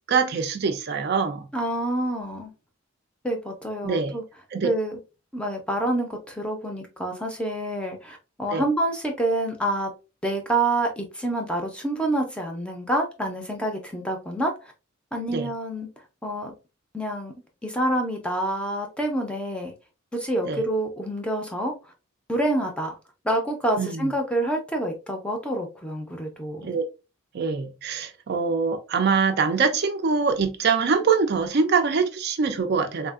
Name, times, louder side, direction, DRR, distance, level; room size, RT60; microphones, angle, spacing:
voice 1, 0.1-1.5 3.8-4.2 4.5-4.7 8.5-8.7 15.3-15.5 20.4-20.6 23.8-24.1 26.6-26.8 27.3-33.1, right 5 dB, 50° right, 0.4 m, -24 dB
voice 2, 1.5-2.5 3.2-4.2 4.6-5.0 5.3-9.9 10.2-14.7 15.1-15.9 16.2-16.5 16.9-17.3 17.6-19.7 20.1-21.7 22.3-22.9 23.2-26.7, right 1 dB, 5° left, 0.5 m, -27 dB
3.5 x 2.4 x 2.3 m
head